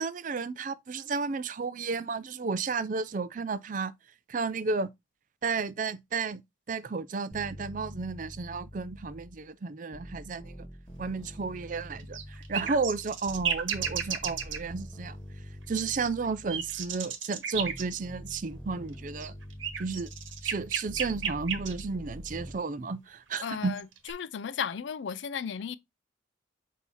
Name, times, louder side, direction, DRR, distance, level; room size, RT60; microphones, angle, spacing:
voice 1, 0.0-3.9 4.3-4.9 5.4-6.4 6.7-10.7 11.0-12.2 12.5-15.2 15.7-19.3 19.8-20.1 20.4-23.7, right 4 dB, 40° right, 0.4 m, -32 dB
sound 1, 7.3-9.5 9.9-17.0 17.5-22.5, equal, 15° left, 0.9 m, -45 dB
sound 2, 12.0-14.6 16.0-17.8 19.1-21.8 23.5-24.1, right 8 dB, 80° right, 1.1 m, -33 dB
voice 2, 23.4-25.7, left 7 dB, 70° left, 0.4 m, -35 dB
6.3 x 2.7 x 5.5 m
head